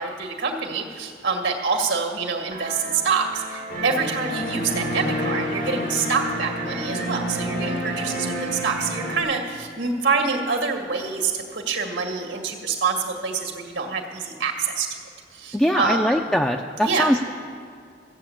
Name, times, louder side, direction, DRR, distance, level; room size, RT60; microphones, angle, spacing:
voice 1, 0.0-14.9 15.3-16.2 16.8-17.1, right 4 dB, 85° right, 2 dB, 1.9 m, -26 dB
sound 1, 2.5-9.2, right 5 dB, 50° right, 0.9 m, -37 dB
sound 2, 3.7-9.2, equal, 90° left, 3.4 m, -29 dB
voice 2, 15.5-17.3, equal, 5° left, 2 dB, 0.4 m, -22 dB
14.5 x 7.4 x 8.6 m, 2.3 s
head